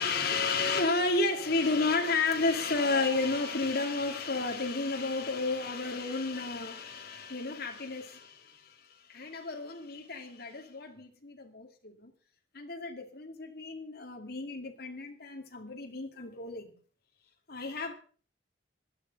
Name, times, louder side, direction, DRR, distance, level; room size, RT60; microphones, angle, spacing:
voice 1, 0.0-12.1 12.5-16.7 17.5-17.9, left 3 dB, 55° left, 3 dB, 2.5 m, -32 dB
15.0 x 10.5 x 5.4 m, 0.41 s
head